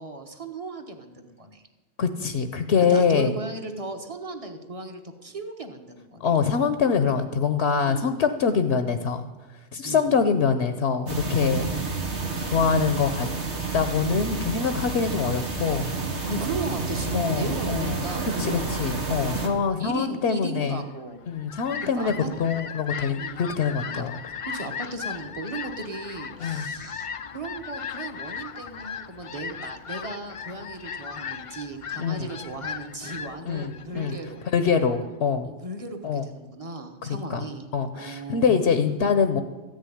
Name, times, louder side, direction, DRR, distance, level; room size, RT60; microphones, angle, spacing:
voice 1, 0.0-1.6 2.8-6.3 7.8-8.1 9.8-10.1 11.6-11.9 16.3-18.8 19.3-21.2 21.8-22.3 23.1-23.5 23.9-24.0 24.4-27.1 27.3-34.4 35.4-37.7 37.9-38.6, right 2 dB, 30° right, 6 dB, 1.3 m, -36 dB
voice 2, 2.0-3.3 6.2-9.2 9.7-11.7 12.5-13.3 13.7-15.9 17.1-18.0 18.4-20.8 21.3-22.1 22.4-24.2 26.4-26.6 32.0-32.3 33.4-34.2 34.5-35.5 36.0-36.2 37.0-37.4 37.7-39.4, left 6 dB, 75° left, 9 dB, 1.1 m, -24 dB
sound 1, 11.1-19.5, right 3 dB, 90° right, 2.1 m, -30 dB
Fowl, 21.1-35.0, left 7 dB, 55° left, 0.3 m, -37 dB
14.5 x 6.5 x 9.9 m, 1.2 s
omnidirectional pair, 1.1 m